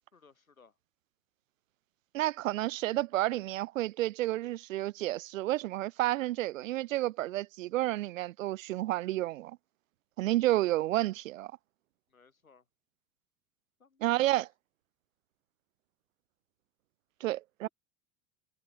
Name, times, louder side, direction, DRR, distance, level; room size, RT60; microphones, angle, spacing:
voice 1, 0.1-0.7 12.1-12.6 13.8-14.5 17.6-17.7, left 5 dB, 90° left, 6.6 m, -60 dB
voice 2, 2.1-9.6 10.2-11.5 14.0-14.5 17.2-17.7, right 16 dB, 70° right, 0.7 m, -30 dB
figure-of-eight pair, 80°, 40 cm